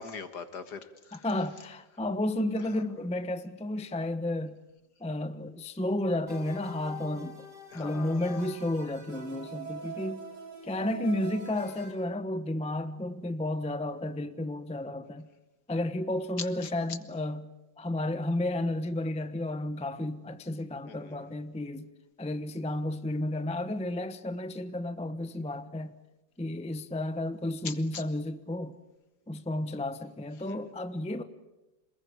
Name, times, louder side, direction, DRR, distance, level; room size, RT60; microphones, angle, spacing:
voice 1, 0.0-1.4 2.6-2.8 7.7-8.5 9.9-10.0 16.4-17.0 20.9-21.3 27.6-28.0 30.4-30.7, left 5 dB, 60° left, 2.1 m, -42 dB
voice 2, 1.2-4.6 5.0-7.4 7.7-10.3 10.6-15.3 15.7-17.4 17.8-21.9 22.2-25.9 26.4-28.8 29.3-31.2, left 1 dB, 5° left, 0.8 m, -32 dB
sound 1, 6.3-11.9, right 2 dB, 60° right, 5.2 m, -44 dB
27.5 x 21.0 x 8.8 m
omnidirectional pair, 2.1 m